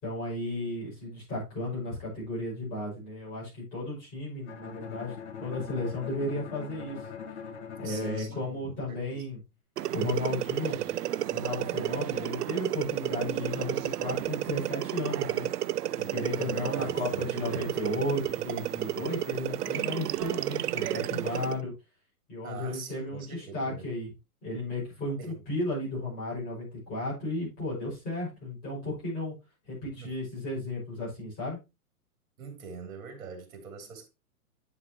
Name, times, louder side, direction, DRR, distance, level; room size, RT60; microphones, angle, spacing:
voice 1, 0.0-7.0 7.8-9.4 9.9-10.9 11.3-15.5 16.1-21.7 22.3-24.1 24.4-29.3 29.7-31.6, left 1 dB, 20° left, 5.6 m, -34 dB
Bowed string instrument, 4.5-9.4, left 7 dB, 45° left, 1.2 m, -42 dB
voice 2, 7.8-9.2 16.3-17.7 22.4-23.9 25.2-25.4 30.0-30.2 32.4-34.1, right 5 dB, 60° right, 3.1 m, -43 dB
sound 1, 9.8-21.6, right 13 dB, 85° right, 0.6 m, -32 dB
9.3 x 6.1 x 2.9 m
hypercardioid pair, 170°, 46 cm